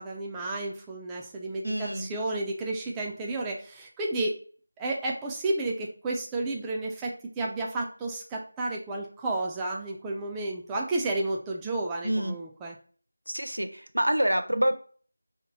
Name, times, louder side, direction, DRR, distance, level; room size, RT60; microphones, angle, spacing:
voice 1, 0.0-4.4 4.8-12.8, right 2 dB, 10° right, -1 dB, 0.3 m, -32 dB
voice 2, 1.6-2.1 12.0-12.4 13.3-14.7, right 1 dB, 80° right, 8 dB, 0.6 m, -27 dB
3.1 x 2.9 x 3.9 m, 0.42 s
figure-of-eight pair, 165°, 0 cm